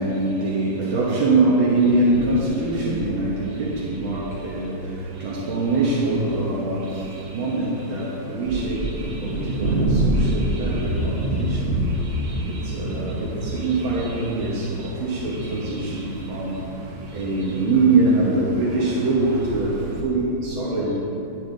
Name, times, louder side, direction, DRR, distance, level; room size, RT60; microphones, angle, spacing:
voice 1, 0.0-16.7 17.0-21.1, right 2 dB, 85° right, -6 dB, 2.0 m, -24 dB
sound 1, 1.7-20.0, right 1 dB, 50° right, 0.7 m, -29 dB
10.0 x 9.8 x 3.9 m, 2.9 s
omnidirectional pair, 2.2 m